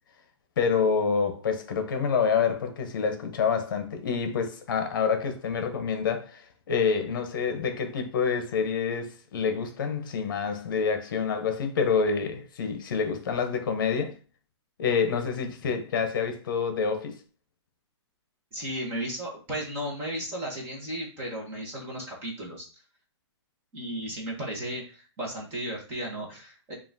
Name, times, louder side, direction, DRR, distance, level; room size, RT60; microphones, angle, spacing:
voice 1, 0.6-14.1 14.8-17.2, left 6 dB, 45° left, 0.9 m, -27 dB
voice 2, 18.5-22.7 23.7-26.7, right 1 dB, 15° right, 1.1 m, -35 dB
5.4 x 2.5 x 2.7 m
hypercardioid pair, 170°, 15 cm